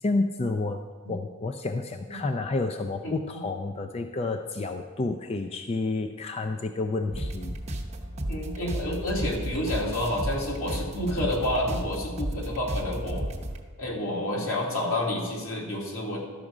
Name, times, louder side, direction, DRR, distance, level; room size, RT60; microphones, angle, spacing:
voice 1, 0.0-0.8 1.1-7.5, left 3 dB, 30° left, 6 dB, 0.4 m, -30 dB
voice 2, 3.0-3.4 8.3-13.2 13.8-16.2, left 1 dB, 80° left, -2 dB, 2.3 m, -29 dB
sound 1, 7.1-13.6, right 1 dB, 30° right, 0.9 m, -33 dB
12.5 x 6.3 x 4.9 m, 1.5 s
head